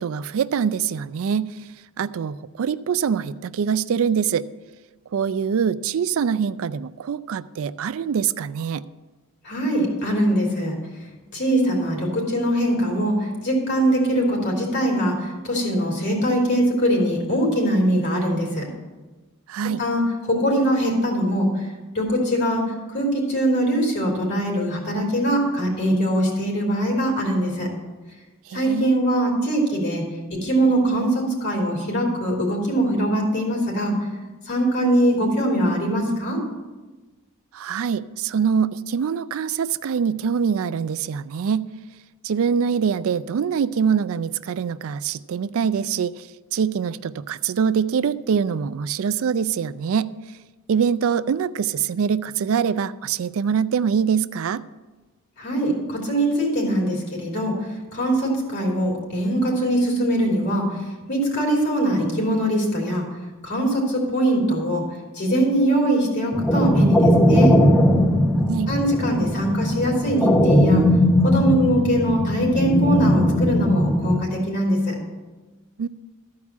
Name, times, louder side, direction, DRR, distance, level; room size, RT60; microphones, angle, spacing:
voice 1, 0.0-1.6 2.0-4.5 5.1-8.8 19.5-19.8 28.5-29.0 37.5-41.7 42.2-50.1 50.7-54.6 68.5-68.7 75.8-75.9, right 7 dB, 65° right, 15 dB, 0.4 m, -24 dB
voice 2, 9.4-10.7 11.3-18.7 19.6-21.6 21.9-27.7 28.5-30.0 30.3-34.0 34.5-36.4 55.4-57.6 57.9-60.7 61.1-63.0 63.4-64.8 65.1-67.6 68.7-70.8 71.2-74.9, right 1 dB, 55° left, -1 dB, 3.2 m, -22 dB
sound 1, 66.3-74.2, equal, 5° left, 0.7 m, -19 dB
13.5 x 4.8 x 7.2 m, 1.2 s
head